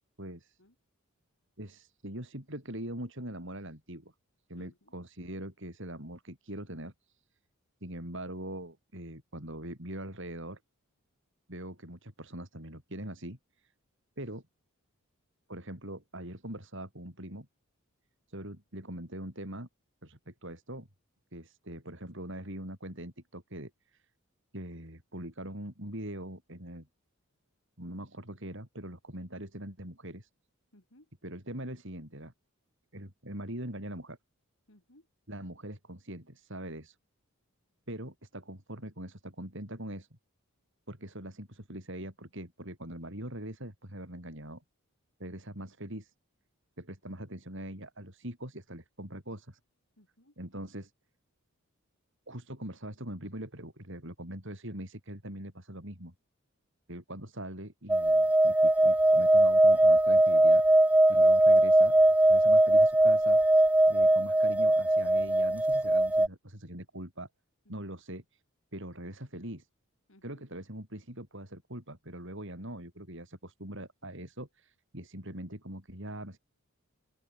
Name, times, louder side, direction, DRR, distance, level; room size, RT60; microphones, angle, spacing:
voice 1, 0.2-0.6 1.6-4.1 4.5-6.9 7.8-10.6 11.5-13.4 14.2-14.4 15.5-17.5 18.3-19.7 20.0-20.9 21.3-23.7 24.5-26.9 27.8-30.3 31.2-32.3 32.9-34.2 35.3-37.0 37.9-40.1 40.9-44.6 45.2-46.1 46.8-49.6 50.4-50.9 52.3-56.1 56.9-60.6 61.1-62.0 62.2-63.4 63.9-67.3 67.7-68.2 68.7-69.7 70.2-76.4, right 1 dB, 55° right, 7.7 m, -42 dB
voice 2, 4.6-4.9 30.7-31.1 34.7-35.1 50.0-50.3 67.7-67.8 70.1-70.4, left 1 dB, 60° left, 4.6 m, -60 dB
sound 1, 57.9-66.3, right 1 dB, 5° right, 0.5 m, -21 dB
head